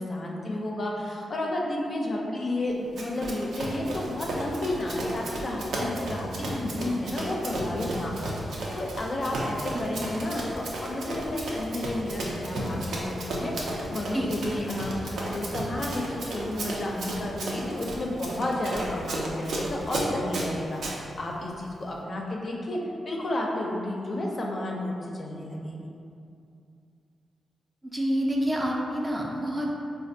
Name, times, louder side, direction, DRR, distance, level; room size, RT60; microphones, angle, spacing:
voice 1, 0.0-20.8 21.2-22.8 23.1-25.9, left 1 dB, 40° left, -1 dB, 0.4 m, -32 dB
Run, 3.0-21.0, right 1 dB, 85° right, 0.5 m, -33 dB
voice 2, 27.8-29.7, equal, 15° right, -2 dB, 0.4 m, -28 dB
4.2 x 2.3 x 2.6 m, 2.5 s
cardioid pair, 105°, 0 cm